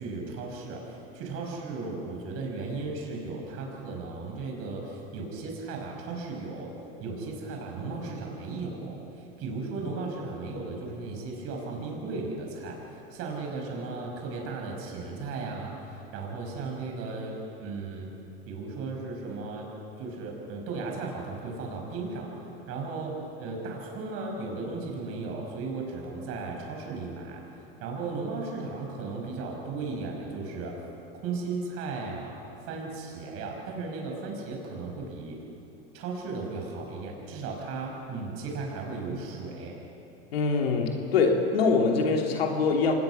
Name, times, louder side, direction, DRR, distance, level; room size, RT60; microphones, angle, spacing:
voice 1, 0.0-6.7 7.0-12.8 13.1-18.1 18.5-19.7 20.0-22.3 22.7-27.4 27.8-30.8 31.2-32.4 32.7-35.4 35.9-39.7, right 3 dB, 50° right, 0 dB, 5.7 m, -36 dB
voice 2, 40.3-42.9, left 4 dB, 85° left, 2 dB, 2.9 m, -24 dB
25.5 x 20.0 x 5.7 m, 3.0 s
hypercardioid pair, 95°, 29 cm